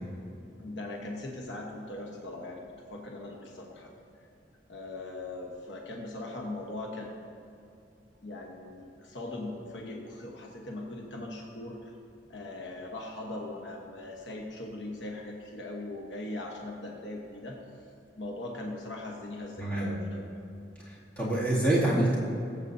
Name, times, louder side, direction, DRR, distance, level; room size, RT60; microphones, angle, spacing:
voice 1, 0.6-2.6 2.9-3.9 4.7-7.2 8.2-11.9 12.3-17.6 18.2-20.3, left 2 dB, 85° left, 0 dB, 1.1 m, -40 dB
voice 2, 19.6-19.9 20.9-22.2, right 1 dB, 10° left, -9 dB, 2.4 m, -26 dB
20.5 x 8.1 x 2.7 m, 2.6 s
head